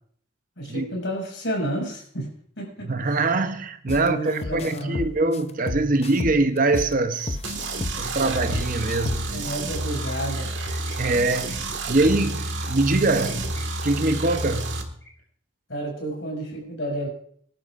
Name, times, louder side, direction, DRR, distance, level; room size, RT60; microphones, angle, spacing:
voice 1, 0.6-2.9 3.9-5.0 9.3-10.5 15.7-17.1, right 1 dB, 65° left, 5.9 m, -31 dB
voice 2, 2.8-7.4 7.9-9.4 11.0-14.9, right 2 dB, 40° right, 0.7 m, -23 dB
sound 1, 3.9-4.1 4.4-6.9 7.3-9.4, left 2 dB, 30° left, 0.5 m, -31 dB
sound 2, 6.5-7.2 8.0-8.7 10.0-11.6 13.0-13.6 15.0-15.2, left 1 dB, 15° left, 3.2 m, -49 dB
sound 3, 7.4-14.8, right 2 dB, 65° right, 1.7 m, -30 dB
25.0 x 11.5 x 2.5 m
head